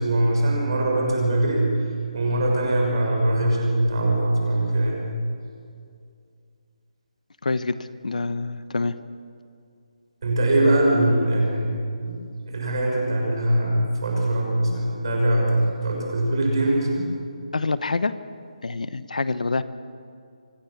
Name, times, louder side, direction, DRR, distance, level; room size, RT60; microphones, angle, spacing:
voice 1, 0.0-1.6 2.1-5.2 10.2-11.7 12.0-17.1, right 1 dB, 40° right, -1 dB, 6.6 m, -22 dB
voice 2, 7.4-7.8 8.0-9.0 17.5-18.1 18.6-19.6, left 3 dB, 80° left, 13 dB, 1.1 m, -26 dB
25.0 x 18.5 x 7.3 m, 2.3 s
hypercardioid pair, 180°, 4 cm